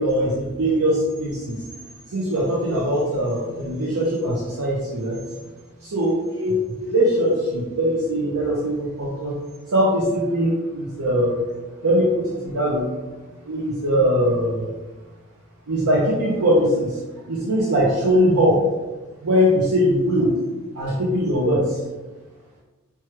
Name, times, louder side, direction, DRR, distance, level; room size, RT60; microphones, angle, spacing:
voice 1, 0.0-1.6 2.1-5.2 5.8-9.4 9.7-11.4 11.8-12.9 13.4-14.7 15.7-17.0 17.3-18.6 19.2-20.3 20.7-21.8, equal, 85° right, -5 dB, 0.7 m, -21 dB
4.4 x 2.3 x 3.1 m, 1.2 s
head